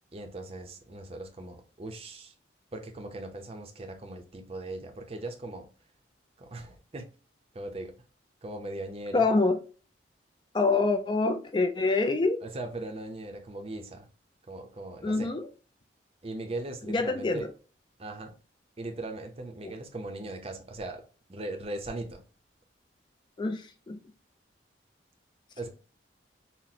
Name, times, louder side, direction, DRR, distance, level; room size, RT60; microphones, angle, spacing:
voice 1, 0.1-2.3 2.7-5.7 6.4-7.1 7.5-7.9 8.4-9.3 12.4-14.1 14.5-15.3 16.2-17.5 18.0-18.3 18.8-21.0 21.3-22.2 25.6-25.7, right 2 dB, 30° right, 0.6 m, -39 dB
voice 2, 9.1-9.6 10.5-12.4 15.0-15.5 16.9-17.5 23.4-24.0, left 3 dB, 25° left, 0.3 m, -26 dB
5.7 x 2.0 x 2.7 m
head